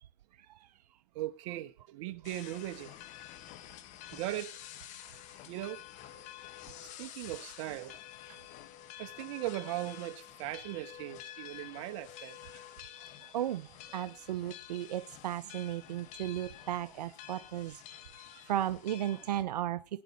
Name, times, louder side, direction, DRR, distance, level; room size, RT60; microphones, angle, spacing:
voice 1, 1.1-2.9 4.1-4.6 5.5-5.8 6.1-6.3 7.0-7.9 9.0-12.4, right 16 dB, 50° right, 1.3 m, -39 dB
sound 1, 2.2-19.4, left 12 dB, 35° left, 1.2 m, -49 dB
voice 2, 13.3-17.8 18.3-19.8, right 12 dB, 85° right, 0.6 m, -35 dB
18.5 x 9.5 x 4.2 m
hypercardioid pair, 135°, 20 cm